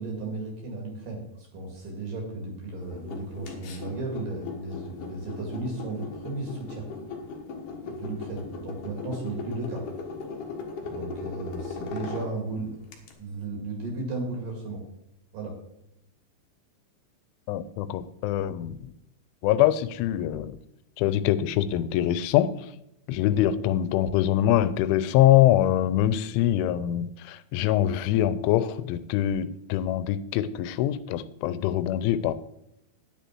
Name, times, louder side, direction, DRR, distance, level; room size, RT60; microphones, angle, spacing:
voice 1, 0.0-6.9 7.9-9.8 10.8-12.8 13.2-14.8 15.3-15.6, right 3 dB, 55° right, 1 dB, 3.4 m, -35 dB
sound 1, 2.8-13.1, left 4 dB, 60° left, 2.2 m, -38 dB
voice 2, 17.5-18.9 19.4-20.6 21.0-22.7 23.1-32.3, left 12 dB, 90° left, 14 dB, 3.1 m, -24 dB
10.5 x 9.7 x 4.6 m, 0.78 s
omnidirectional pair, 5.4 m